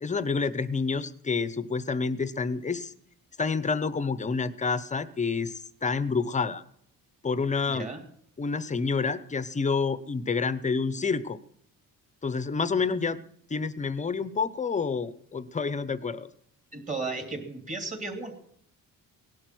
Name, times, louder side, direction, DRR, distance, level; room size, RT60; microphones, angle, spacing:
voice 1, 0.0-2.9 3.4-6.6 7.2-7.9 8.4-11.4 12.2-13.2 13.5-16.3, left 4 dB, 20° left, 15 dB, 0.8 m, -28 dB
voice 2, 7.7-8.0 16.7-18.3, right 3 dB, 20° right, 5 dB, 3.1 m, -34 dB
18.0 x 11.5 x 6.2 m, 0.67 s
cardioid pair, 160°, 35 cm